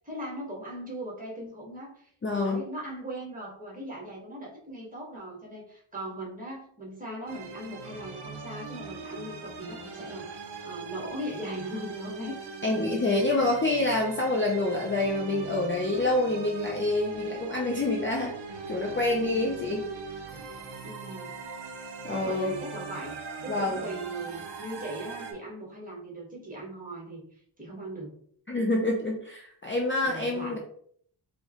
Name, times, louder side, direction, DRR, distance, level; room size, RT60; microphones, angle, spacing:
voice 1, 0.0-12.4 13.0-13.5 20.8-21.3 22.1-23.1 23.4-27.2 27.6-28.1 30.0-30.6, right 1 dB, 15° right, -3 dB, 1.1 m, -39 dB
voice 2, 2.2-2.6 12.6-18.4 18.7-19.8 22.0-22.5 23.5-23.8 28.5-30.6, left 2 dB, 25° left, -1 dB, 0.4 m, -27 dB
sound 1, 7.3-25.3, right 4 dB, 60° right, 0.6 m, -41 dB
4.5 x 2.1 x 2.8 m, 0.63 s
wide cardioid pair, 165°, 47 cm